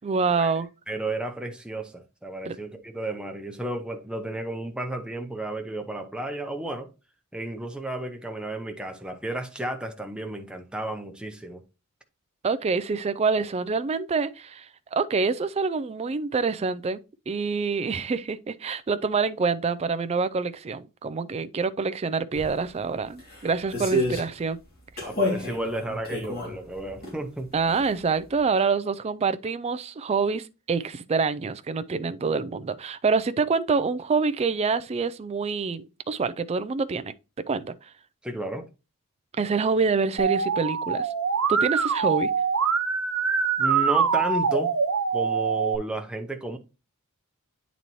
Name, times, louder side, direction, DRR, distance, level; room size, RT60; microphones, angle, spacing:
voice 1, 0.0-0.7 2.5-2.6 12.4-14.7 14.9-17.0 17.3-24.6 27.5-37.1 37.5-37.7 39.4-41.1 41.5-42.3, right 4 dB, 30° right, 0.3 m, -26 dB
voice 2, 0.9-6.9 7.3-11.6 25.0-27.5 38.2-38.7 43.6-44.7 45.1-46.6, right 2 dB, 5° right, 0.7 m, -32 dB
sound 1, 22.3-22.5 23.2-24.3 25.0-27.1 27.5-28.0 28.3-28.4, equal, 45° left, 2.2 m, -29 dB
Musical instrument, 40.2-45.7, right 6 dB, 70° right, 0.8 m, -24 dB
9.0 x 4.0 x 3.0 m
head